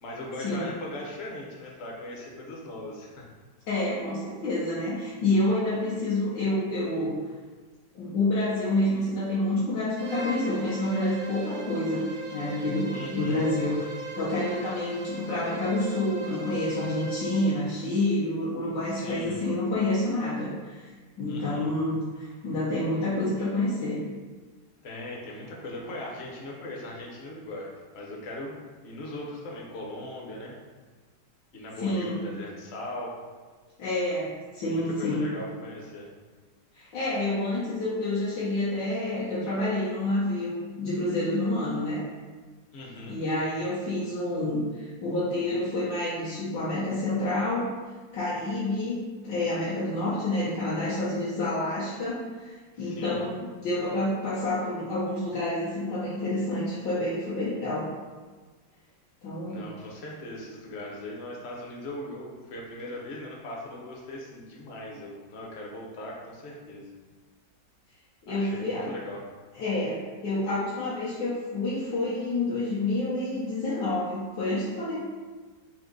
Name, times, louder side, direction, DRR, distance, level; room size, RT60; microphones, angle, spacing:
voice 1, 0.0-3.3 12.9-13.4 18.9-19.4 21.3-21.7 24.8-28.6 28.8-30.5 31.5-33.2 34.6-36.1 42.7-43.2 52.8-53.2 59.5-66.9 68.3-69.2, left 1 dB, 55° left, -2 dB, 0.7 m, -39 dB
voice 2, 3.7-7.2 7.9-13.8 14.1-20.9 21.2-24.0 31.8-32.3 33.8-35.3 36.7-42.0 43.1-47.7 48.1-49.0 49.2-57.9 59.2-59.7 68.3-68.9 69.5-75.0, left 2 dB, 85° left, -9 dB, 1.5 m, -28 dB
Bowed string instrument, 10.0-17.6, right 5 dB, 85° right, 1.2 m, -38 dB
3.7 x 2.6 x 3.8 m, 1.4 s
omnidirectional pair, 1.9 m